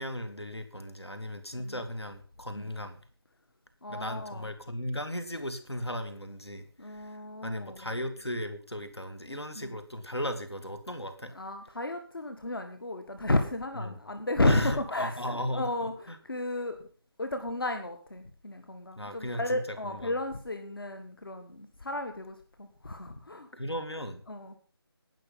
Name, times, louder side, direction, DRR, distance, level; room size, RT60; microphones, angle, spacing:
voice 1, 0.0-3.0 3.9-7.1 7.4-11.3 13.9-14.0 14.4-15.7 16.1-16.2 19.0-20.1 23.5-24.2, equal, 85° left, 10 dB, 2.6 m, -36 dB
voice 2, 3.8-4.5 6.8-7.8 9.6-9.8 11.3-16.8 17.2-23.5 24.3-24.6, left 2 dB, 60° left, 7 dB, 1.8 m, -33 dB
19.0 x 6.3 x 5.4 m, 0.41 s
figure-of-eight pair, 160°, 13 cm